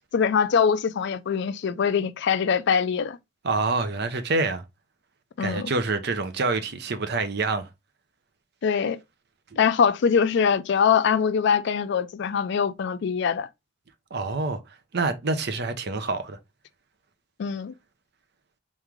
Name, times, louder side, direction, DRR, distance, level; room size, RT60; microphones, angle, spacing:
voice 1, 0.1-3.2 5.4-5.7 8.6-9.0 9.6-13.5 17.4-17.7, left 6 dB, 60° left, 0.4 m, -23 dB
voice 2, 3.4-4.6 5.4-7.7 14.1-14.6 14.9-16.4, right 3 dB, 55° right, 0.7 m, -26 dB
3.6 x 3.2 x 3.5 m
head